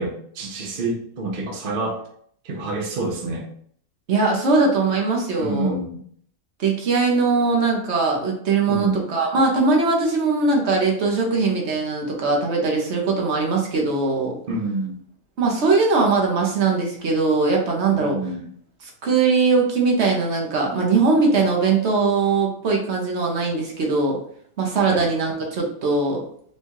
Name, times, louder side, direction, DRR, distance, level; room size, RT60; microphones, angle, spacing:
voice 1, 0.0-2.0 2.4-3.5 5.4-6.0 8.7-9.0 14.5-15.0 17.9-18.5 24.9-25.1, right 2 dB, 75° right, -1 dB, 0.4 m, -27 dB
voice 2, 4.1-5.8 6.6-14.3 15.4-18.2 18.8-24.2 24.6-26.2, right 4 dB, 55° right, -1 dB, 0.8 m, -20 dB
4.5 x 2.3 x 2.9 m, 0.62 s
omnidirectional pair, 1.9 m